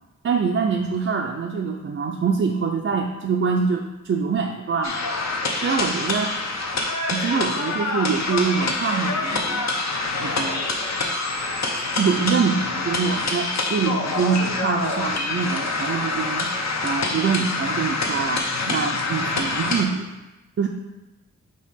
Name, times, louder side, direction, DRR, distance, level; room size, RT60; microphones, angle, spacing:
voice 1, 0.2-5.0 5.6-6.3 7.1-9.8 10.2-10.8 12.0-16.5 16.8-20.1 20.6-20.7, right 5 dB, 45° right, 1 dB, 0.4 m, -24 dB
sound 1, 4.8-19.8, left 3 dB, 60° left, 0.8 m, -26 dB
5.2 x 3.5 x 5.6 m, 1.1 s
wide cardioid pair, 115°, 30 cm